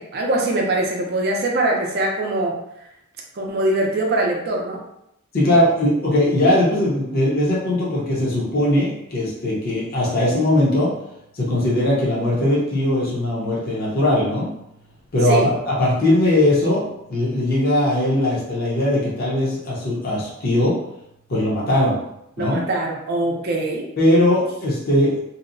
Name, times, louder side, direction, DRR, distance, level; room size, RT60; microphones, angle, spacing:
voice 1, 0.0-2.6 3.3-4.8 15.3-15.5 22.4-23.8, right 2 dB, 45° right, 0 dB, 0.5 m, -22 dB
voice 2, 5.3-10.9 11.4-14.5 15.1-16.8 17.1-20.8 21.3-22.0 22.4-22.6 24.0-25.2, left 1 dB, 45° left, -5 dB, 0.7 m, -19 dB
2.7 x 2.0 x 2.5 m, 0.79 s
head